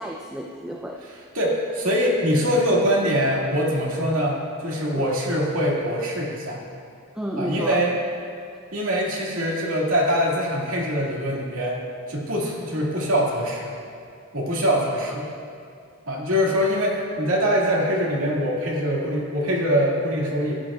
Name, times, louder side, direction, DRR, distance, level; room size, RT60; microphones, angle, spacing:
voice 1, 0.0-1.2 4.9-5.1 7.2-7.8 15.0-15.2, equal, 5° right, -1 dB, 0.4 m, -32 dB
voice 2, 1.3-6.6 7.4-7.9 8.7-11.8 12.1-13.7 14.3-15.3 16.1-20.6, equal, 75° right, -4 dB, 2.1 m, -23 dB
15.0 x 10.5 x 2.4 m, 2.3 s
head